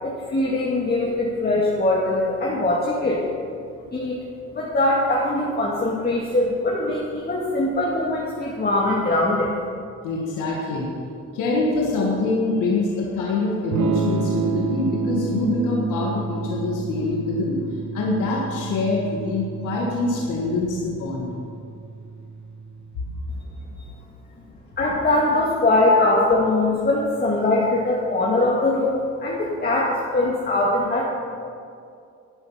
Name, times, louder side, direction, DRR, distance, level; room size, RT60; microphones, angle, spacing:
voice 1, 0.0-3.2 3.9-4.2 4.5-9.5 24.8-31.0, left 2 dB, 30° left, -4 dB, 2.0 m, -21 dB
voice 2, 10.0-10.9 11.3-17.6 17.9-21.3 23.1-23.2 25.9-26.0, left 3 dB, 90° left, -2 dB, 1.8 m, -24 dB
Electric guitar / Strum, 13.7-23.5, right 5 dB, 70° right, 1.0 m, -30 dB
12.5 x 8.8 x 5.7 m, 2.4 s
cardioid pair, 90°, 30 cm